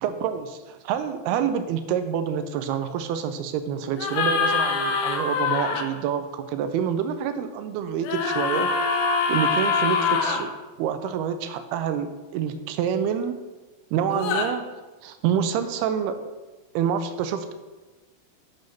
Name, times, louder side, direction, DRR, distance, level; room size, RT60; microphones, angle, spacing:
voice 1, 0.0-9.0 9.3-10.5 10.8-13.4 13.9-14.7 15.0-16.2 16.7-17.5, right 8 dB, 85° right, 9 dB, 2.6 m, -27 dB
sound 1, 4.0-5.8 8.0-10.4 14.1-14.5, left 5 dB, 75° left, 2.5 m, -24 dB
8.5 x 6.2 x 5.8 m, 1.2 s
omnidirectional pair, 4.6 m